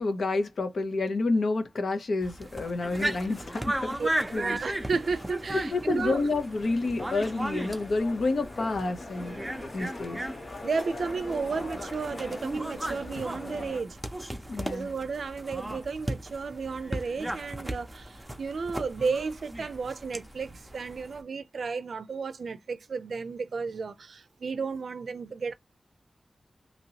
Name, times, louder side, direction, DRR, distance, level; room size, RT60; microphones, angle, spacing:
voice 1, 0.0-4.0 4.3-4.6 5.5-9.4 9.7-10.2 14.5-14.9, left 3 dB, 80° left, 0.7 m, -29 dB
sound 1, 2.2-21.2, right 1 dB, 10° right, 0.6 m, -37 dB
sound 2, 2.9-13.8, left 2 dB, 55° left, 1.0 m, -43 dB
voice 2, 4.0-6.2 10.6-14.0 14.6-25.5, right 4 dB, 80° right, 0.4 m, -33 dB
2.9 x 2.8 x 2.8 m
wide cardioid pair, 120°, 0 cm